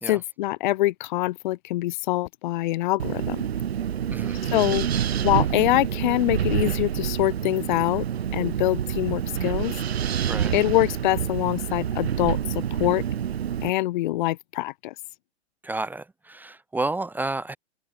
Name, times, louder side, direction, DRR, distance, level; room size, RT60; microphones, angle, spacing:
voice 1, 0.1-3.4 4.5-4.9 5.2-8.1 8.3-9.7 10.5-13.0 13.6-14.9, left 17 dB, 40° left, 1.5 m, -24 dB
Wind, 3.0-13.7, right 9 dB, 60° right, 3.2 m, -27 dB
voice 2, 4.1-4.4 10.2-10.5 15.6-17.6, right 2 dB, 5° right, 1.5 m, -31 dB
figure-of-eight pair, 115°, 35 cm